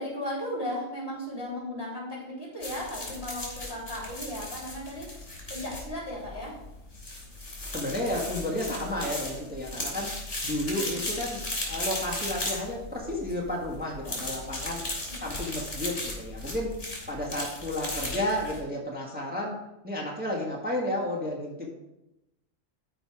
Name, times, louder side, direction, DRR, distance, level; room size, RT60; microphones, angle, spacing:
voice 1, 0.0-6.6 10.7-10.9 15.1-15.2, left 1 dB, 50° left, -4 dB, 3.6 m, -36 dB
sound 1, 2.6-18.6, left 2 dB, 65° left, 3.6 m, -36 dB
voice 2, 7.7-10.1 10.4-14.8 15.1-16.7 17.1-19.6 19.8-21.7, left 1 dB, 5° right, -3 dB, 1.6 m, -32 dB
12.5 x 5.1 x 4.9 m, 0.90 s
omnidirectional pair, 1.3 m